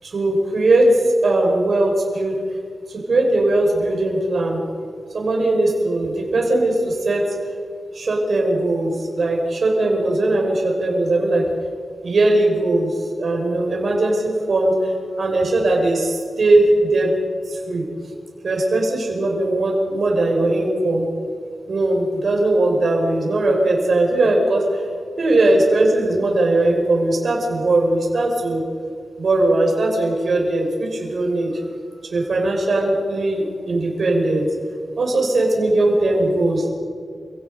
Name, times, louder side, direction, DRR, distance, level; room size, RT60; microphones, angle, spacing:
voice 1, 0.0-0.9 1.2-2.4 2.9-4.6 5.1-7.2 7.9-11.4 12.0-14.9 15.2-17.1 17.5-17.8 18.4-21.1 21.7-24.8 25.2-28.6 29.2-31.7 32.1-34.5 35.0-36.7, right 2 dB, 60° right, 0 dB, 5.7 m, -19 dB
29.5 x 17.5 x 5.2 m, 2.2 s
wide cardioid pair, 110°, 0 cm